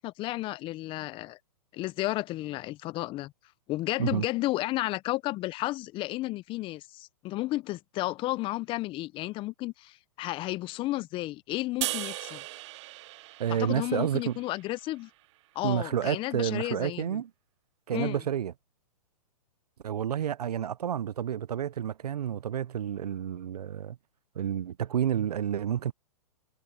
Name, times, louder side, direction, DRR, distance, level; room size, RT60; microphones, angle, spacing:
voice 1, 0.0-1.4 1.7-3.3 3.7-12.4 13.5-15.1 15.5-17.2 17.9-18.2, left 18 dB, 25° left, 0.8 m, -32 dB
sound 1, 11.8-15.1, right 18 dB, 50° right, 1.2 m, -38 dB
voice 2, 13.4-14.4 15.6-17.3 17.9-18.5 19.8-24.0 24.4-25.9, right 9 dB, 75° right, 0.7 m, -30 dB
hypercardioid pair, 130°, 20 cm